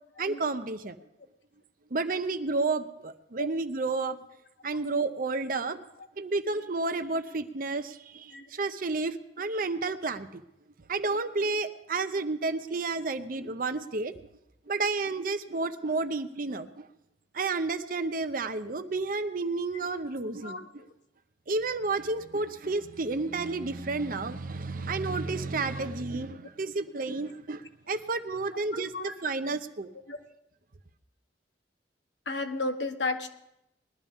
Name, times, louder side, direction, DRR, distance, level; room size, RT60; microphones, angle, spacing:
voice 1, 0.2-1.0 1.9-4.2 4.6-5.8 6.2-10.4 10.9-14.1 14.7-16.9 17.3-20.9 21.5-29.9, right 3 dB, 50° right, 10 dB, 0.7 m, -31 dB
voice 2, 28.7-29.1 30.1-30.2 32.3-33.3, left 2 dB, 85° left, 6 dB, 1.2 m, -33 dB
20.5 x 12.0 x 3.6 m, 0.85 s
head